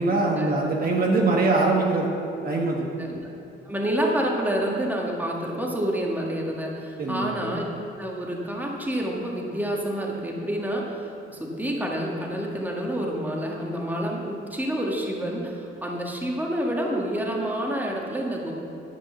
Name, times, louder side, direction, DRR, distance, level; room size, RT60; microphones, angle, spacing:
voice 1, 0.0-2.1 2.4-2.9 7.0-7.3, right 3 dB, 50° right, -1 dB, 1.4 m, -22 dB
voice 2, 3.0-3.3 3.6-7.6 8.0-18.5, right 1 dB, 10° right, -1 dB, 1.8 m, -28 dB
10.5 x 5.3 x 7.0 m, 2.9 s
cardioid pair, 90°, 20 cm